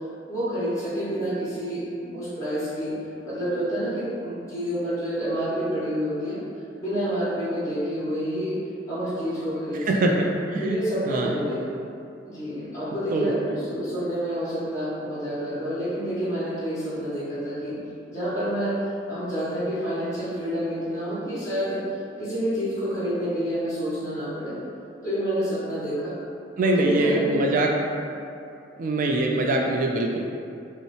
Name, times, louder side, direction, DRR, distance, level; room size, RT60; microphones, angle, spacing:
voice 1, 0.3-2.9 3.2-6.4 6.8-8.5 8.9-10.2 10.6-11.8 12.2-17.8 18.1-21.8 22.2-24.6 25.0-26.1 26.6-27.5, equal, 20° left, -12 dB, 1.4 m, -28 dB
voice 2, 9.9-10.8 11.1-11.4 13.1-13.3 26.6-27.7 28.8-30.2, right 2 dB, 45° right, 0 dB, 0.3 m, -23 dB
5.2 x 2.0 x 3.2 m, 2.5 s
head